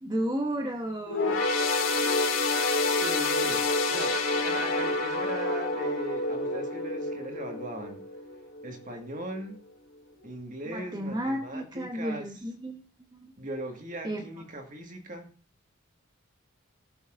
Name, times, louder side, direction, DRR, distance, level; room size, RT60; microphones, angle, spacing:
voice 1, 0.0-1.4 10.7-13.3 14.0-14.2, right 1 dB, 20° right, 1.0 m, -33 dB
sound 1, 1.1-8.7 9.2-9.3 10.2-10.3, left 3 dB, 75° left, 2.6 m, -28 dB
voice 2, 3.0-8.1 8.6-9.6 10.2-12.3 13.4-15.3, right 1 dB, 40° right, 1.8 m, -39 dB
20.0 x 6.9 x 2.6 m
head